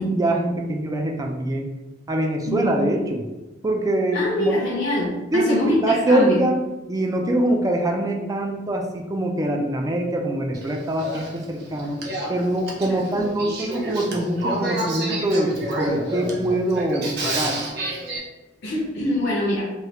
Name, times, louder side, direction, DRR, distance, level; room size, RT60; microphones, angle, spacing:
voice 1, 0.0-1.7 2.1-3.2 3.6-4.6 5.3-6.6 6.9-12.0 12.3-17.6, right 1 dB, 20° right, 2 dB, 0.3 m, -23 dB
voice 2, 2.5-2.9 4.1-6.4 12.8-13.0 18.6-19.6, left 1 dB, 60° left, -5 dB, 0.6 m, -24 dB
Male speech man speaking / Female speech woman speaking / Conversation, 10.5-18.2, right 1 dB, 55° right, 0.7 m, -29 dB
3.1 x 2.3 x 2.9 m, 1.1 s
head